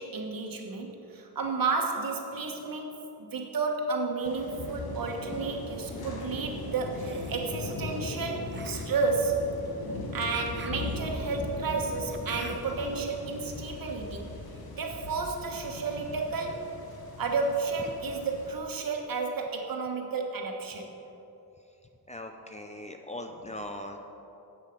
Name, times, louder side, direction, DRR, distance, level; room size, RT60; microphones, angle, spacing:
voice 1, 0.0-9.4 10.1-14.3 14.7-16.6 17.2-20.9, right 4 dB, 60° right, 2 dB, 1.3 m, -32 dB
sound 1, 4.2-18.6, left 2 dB, 70° left, 1.4 m, -39 dB
sound 2, 5.6-6.1 6.9-7.5 8.5-12.9, right 5 dB, 30° right, 0.5 m, -49 dB
voice 2, 22.1-24.0, left 1 dB, 20° left, 4 dB, 0.5 m, -40 dB
10.0 x 7.5 x 5.2 m, 2.9 s
wide cardioid pair, 125°, 38 cm